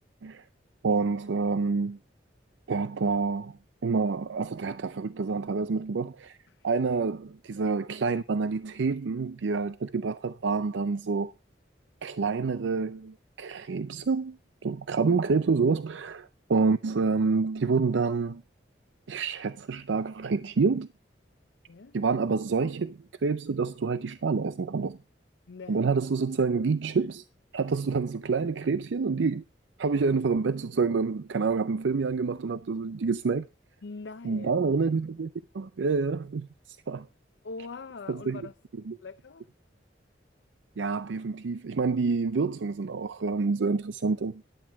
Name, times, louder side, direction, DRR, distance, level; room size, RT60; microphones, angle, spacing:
voice 1, 0.8-2.0 2.7-6.4 6.6-11.3 12.0-18.4 19.1-20.9 21.9-25.0 25.7-27.2 27.5-29.4 29.8-33.5 34.2-35.3 35.5-37.1 38.1-38.4 38.9-39.0 40.8-44.4, right 4 dB, 85° right, 0.5 m, -28 dB
voice 2, 25.5-25.8 33.8-34.6 37.4-38.5 39.0-39.5, left 4 dB, 80° left, 0.6 m, -42 dB
13.5 x 11.5 x 3.5 m
head